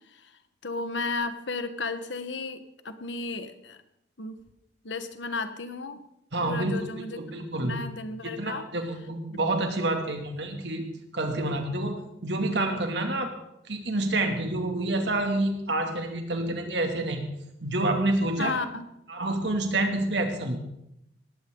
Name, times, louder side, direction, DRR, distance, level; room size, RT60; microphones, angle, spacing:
voice 1, 0.6-3.8 4.2-4.4 4.8-6.0 6.4-8.7 18.4-18.8, left 3 dB, 85° left, 9 dB, 1.4 m, -34 dB
voice 2, 6.3-7.8 8.2-10.9 11.1-12.0 12.2-13.3 13.7-17.2 17.6-18.5 19.1-20.7, right 2 dB, 70° right, 4 dB, 2.6 m, -28 dB
19.0 x 15.5 x 3.9 m, 0.80 s
head